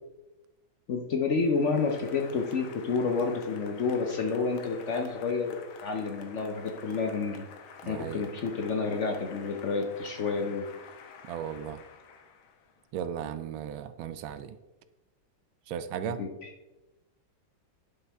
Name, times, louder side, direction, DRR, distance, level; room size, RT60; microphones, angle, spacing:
voice 1, 0.9-7.5 7.8-10.7 16.0-16.5, left 4 dB, 65° left, 3 dB, 0.7 m, -29 dB
Applause, 1.4-12.9, left 6 dB, 90° left, 1.7 m, -49 dB
voice 2, 7.8-8.2 11.3-11.8 12.9-14.6 15.7-16.2, right 9 dB, 80° right, 12 dB, 1.3 m, -36 dB
11.0 x 5.6 x 3.4 m, 1.1 s
omnidirectional pair, 2.2 m